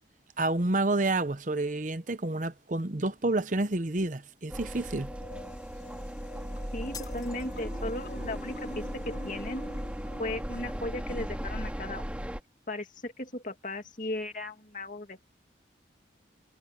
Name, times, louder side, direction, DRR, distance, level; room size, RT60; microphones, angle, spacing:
voice 1, 0.4-5.1, right 2 dB, 40° right, 0.9 m, -29 dB
sound 1, 4.5-12.4, equal, 5° right, 2.4 m, -37 dB
sound 2, 5.1-11.4, left 2 dB, 65° left, 3.3 m, -48 dB
voice 2, 6.7-9.6 10.2-12.1 12.7-15.3, left 2 dB, 45° left, 2.4 m, -36 dB
sound 3, 6.9-8.0, left 6 dB, 20° left, 4.4 m, -46 dB
head